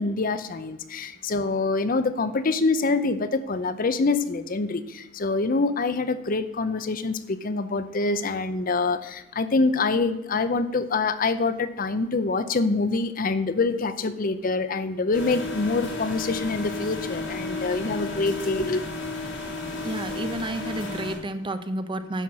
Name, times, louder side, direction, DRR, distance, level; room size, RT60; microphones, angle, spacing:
voice 1, 0.0-18.9, left 3 dB, 45° left, 12 dB, 0.6 m, -25 dB
sound 1, 15.1-21.2, left 3 dB, 85° left, 2.8 m, -33 dB
voice 2, 19.8-22.2, right 1 dB, 25° right, 10 dB, 0.7 m, -31 dB
10.5 x 5.7 x 7.5 m, 0.90 s
head